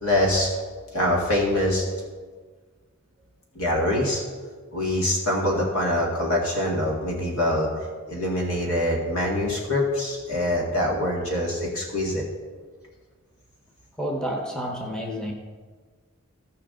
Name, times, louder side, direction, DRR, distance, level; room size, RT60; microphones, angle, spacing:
voice 1, 0.0-0.5 0.9-1.8 3.6-4.2 4.7-7.7 8.1-12.3, left 1 dB, 70° left, -2 dB, 2.0 m, -24 dB
voice 2, 14.0-15.3, equal, 5° left, 0 dB, 1.0 m, -29 dB
15.5 x 5.7 x 3.8 m, 1.5 s
head